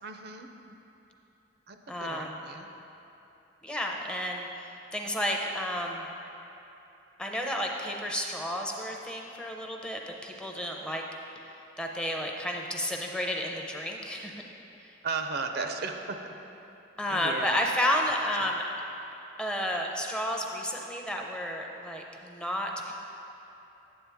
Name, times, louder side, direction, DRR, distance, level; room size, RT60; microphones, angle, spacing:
voice 1, 0.0-0.8 1.7-2.7 15.0-16.3 17.1-17.6 18.4-18.5, right 4 dB, 60° right, 5 dB, 0.5 m, -36 dB
voice 2, 1.9-2.4 3.6-6.1 7.2-11.0 11.8-14.3 14.8-14.9 17.0-18.7 19.4-22.9, equal, 5° left, 0 dB, 0.5 m, -31 dB
8.8 x 7.7 x 3.5 m, 2.9 s
head